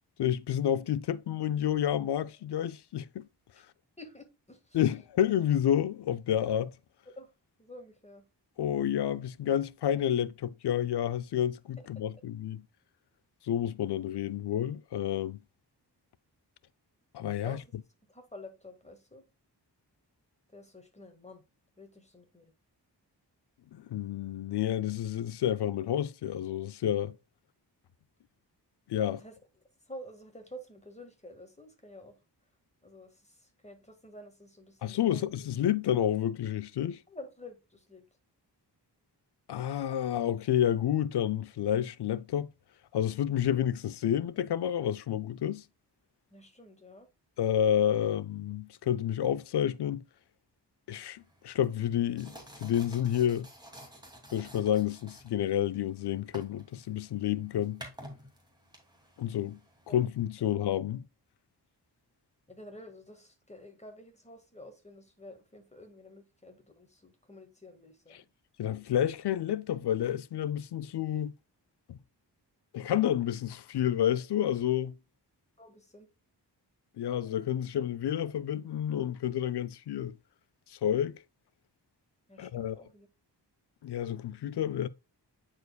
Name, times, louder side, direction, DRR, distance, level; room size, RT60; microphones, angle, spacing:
voice 1, 0.2-3.3 4.7-6.7 8.6-12.6 13.4-15.4 17.1-17.6 23.7-27.2 28.9-29.2 34.8-37.0 39.5-42.5 42.9-45.6 47.4-50.0 50.9-53.5 54.3-57.8 59.2-59.6 59.9-61.0 68.6-71.3 71.9-72.0 72.7-74.9 77.0-80.2 80.7-81.2 82.4-82.8 83.8-84.9, left 10 dB, 70° left, 0.5 m, -30 dB
voice 2, 4.0-4.8 7.2-7.3 7.6-8.2 12.0-12.1 17.4-17.6 18.1-19.2 20.5-21.4 21.8-22.5 29.0-29.4 29.9-32.2 32.8-35.3 37.1-38.0 46.3-47.1 59.9-60.0 62.5-68.3 75.6-76.1 82.3-83.1, left 1 dB, 15° left, 1.8 m, -50 dB
sound 1, 51.2-60.4, equal, 10° right, 2.5 m, -52 dB
9.4 x 4.5 x 2.3 m
cardioid pair, 65°, 42 cm